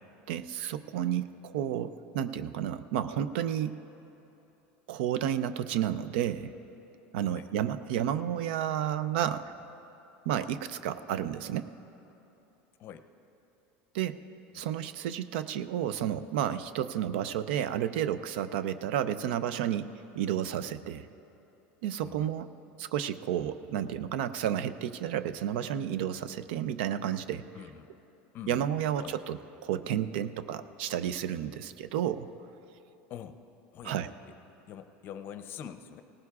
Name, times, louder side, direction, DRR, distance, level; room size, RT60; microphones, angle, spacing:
voice 1, 0.3-3.8 4.9-6.5 7.1-9.5 10.3-11.7 13.9-14.2 14.5-21.1 21.8-22.5 22.8-27.4 28.5-32.3 33.8-34.1, right 10 dB, 80° right, 13 dB, 0.5 m, -31 dB
voice 2, 27.5-27.9 28.3-28.7 29.0-29.2 33.1-33.4 33.7-34.0 34.7-36.0, left 9 dB, 40° left, 10 dB, 0.6 m, -44 dB
18.0 x 15.5 x 2.4 m, 3.0 s
supercardioid pair, 140°, 6 cm